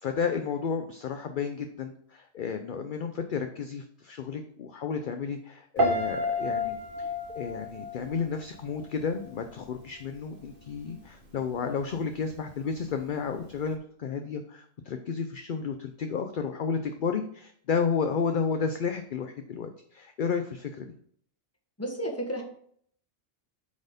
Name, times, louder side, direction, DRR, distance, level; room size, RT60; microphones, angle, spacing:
voice 1, 0.0-20.9, left 6 dB, 55° left, 6 dB, 0.6 m, -32 dB
Piano, 5.8-8.9 9.2-9.6, left 1 dB, 40° right, 1.3 m, -30 dB
voice 2, 21.8-22.4, right 1 dB, 10° left, 1 dB, 1.5 m, -32 dB
8.3 x 4.4 x 5.1 m, 0.62 s
omnidirectional pair, 1.4 m